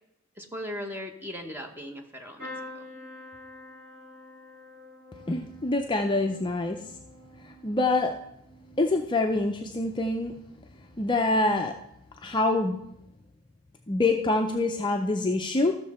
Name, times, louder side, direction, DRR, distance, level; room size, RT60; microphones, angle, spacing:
voice 1, 0.4-2.5 2.7-2.9, left 1 dB, 10° right, 3 dB, 1.0 m, -38 dB
sound 1, 2.4-10.2 10.7-11.2 12.5-12.7 12.9-13.0, left 1 dB, 45° right, 4.4 m, -47 dB
voice 2, 5.3-6.8 7.4-8.1 8.8-10.3 11.0-11.7 12.2-12.8 13.9-15.8, left 2 dB, 20° left, 4 dB, 0.4 m, -25 dB
14.0 x 6.5 x 4.2 m, 0.80 s
head